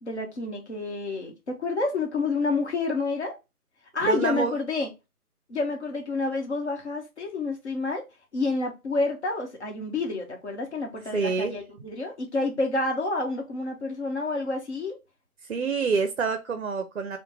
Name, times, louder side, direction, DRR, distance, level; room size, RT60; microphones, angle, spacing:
voice 1, 0.0-3.4 3.9-4.9 5.5-8.0 8.3-15.0, left 3 dB, 45° left, 1.2 m, -29 dB
voice 2, 4.0-4.5 11.1-11.6 15.5-17.2, right 5 dB, 55° right, 0.5 m, -27 dB
3.4 x 2.2 x 3.1 m
hypercardioid pair, 165°, 46 cm